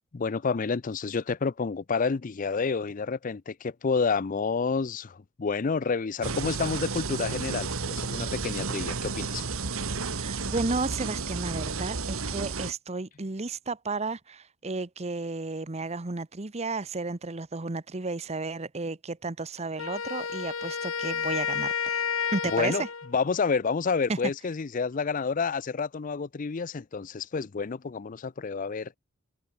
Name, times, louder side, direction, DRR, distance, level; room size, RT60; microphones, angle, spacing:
voice 1, 0.1-9.5 22.5-22.8 23.1-29.0, left 5 dB, 40° left, 0.5 m, -29 dB
sound 1, 6.2-12.7, right 4 dB, 80° right, 1.8 m, -32 dB
voice 2, 10.2-22.0 22.3-22.9 24.1-24.2, right 3 dB, 30° right, 0.9 m, -33 dB
Wind instrument woodwind instrument, 19.8-23.1, left 7 dB, 80° left, 1.3 m, -31 dB
head